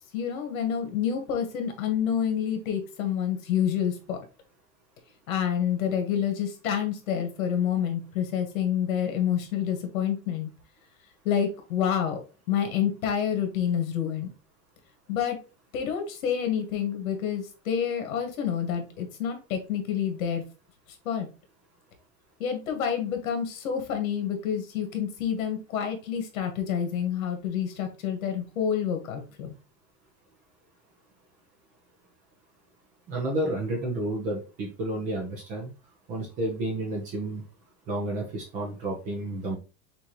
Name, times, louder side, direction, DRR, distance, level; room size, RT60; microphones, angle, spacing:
voice 1, 0.1-4.2 5.3-10.5 11.2-12.2 12.5-14.3 15.1-15.4 15.7-20.4 21.0-21.3 22.4-29.5, left 8 dB, 70° left, 5 dB, 1.6 m, -28 dB
voice 2, 33.1-35.7 36.1-37.4 37.9-39.6, right 1 dB, 20° right, 1 dB, 0.6 m, -31 dB
6.2 x 2.8 x 3.0 m, 0.32 s
supercardioid pair, 175°, 42 cm